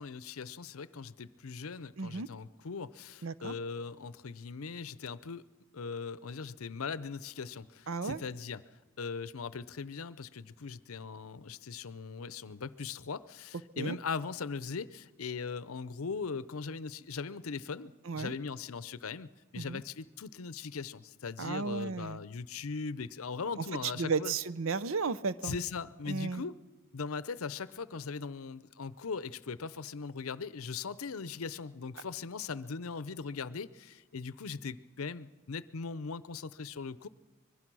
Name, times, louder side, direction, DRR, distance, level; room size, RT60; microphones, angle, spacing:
voice 1, 0.0-5.4 5.7-8.6 9.0-24.3 25.4-26.5 26.9-37.1, left 5 dB, 80° left, 17 dB, 0.6 m, -40 dB
voice 2, 2.0-2.3 3.2-3.5 7.9-8.2 13.8-14.0 18.1-18.3 19.6-19.8 21.4-22.2 23.8-25.6 26.1-26.4, right 4 dB, 75° right, 17 dB, 0.6 m, -34 dB
24.5 x 21.5 x 6.2 m, 1.2 s
head